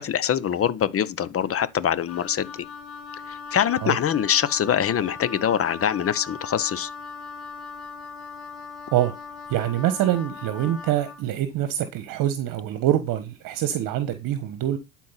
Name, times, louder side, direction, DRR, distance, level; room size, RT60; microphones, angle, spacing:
voice 1, 0.0-2.5 3.5-6.9, left 9 dB, 35° left, 1.0 m, -24 dB
Wind instrument woodwind instrument, 2.1-11.2, left 4 dB, 70° left, 2.0 m, -39 dB
voice 2, 9.5-14.8, right 12 dB, 55° right, 1.3 m, -25 dB
12.0 x 4.6 x 5.7 m
hypercardioid pair, 70°, 38 cm